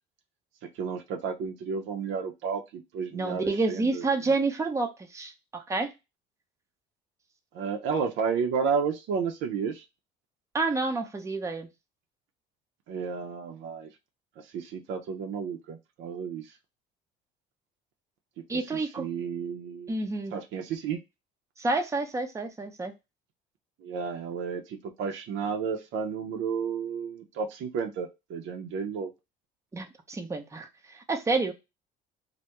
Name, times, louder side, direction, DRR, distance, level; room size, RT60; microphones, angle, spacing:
voice 1, 0.8-4.1 7.5-9.8 12.9-13.9 14.4-16.4 18.5-19.9 20.3-21.0 23.8-29.1, right 6 dB, 65° right, 4 dB, 0.6 m, -32 dB
voice 2, 3.1-5.9 10.5-11.7 18.5-19.1 19.9-20.3 21.6-22.9 29.7-30.7 30.9-31.5, right 3 dB, 15° right, 4 dB, 0.5 m, -29 dB
2.2 x 2.1 x 2.8 m, 0.24 s
supercardioid pair, 80°, 21 cm